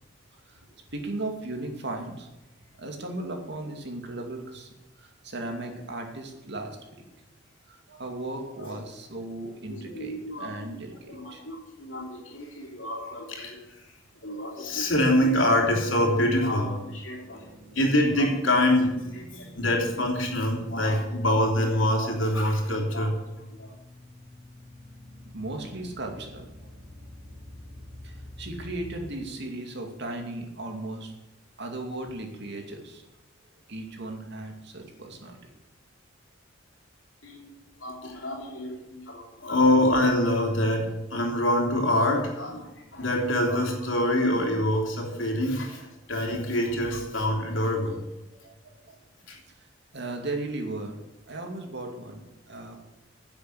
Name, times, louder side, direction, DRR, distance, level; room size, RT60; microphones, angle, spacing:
voice 1, 0.9-2.3 2.8-4.7 5.0-7.1 7.7-11.4 25.3-27.1 28.0-31.1 31.6-33.0 33.7-35.5 48.3-49.0 49.9-51.0 51.3-52.8, right 2 dB, 60° right, 3 dB, 2.5 m, -36 dB
voice 2, 9.7-10.7 11.1-13.8 14.2-23.2 23.5-23.7 37.2-37.5 37.8-48.0 49.3-49.4, left 1 dB, 80° left, 1 dB, 3.3 m, -26 dB
sound 1, 17.2-29.1, left 1 dB, 20° right, 3.1 m, -47 dB
10.5 x 7.8 x 8.5 m, 1.0 s
head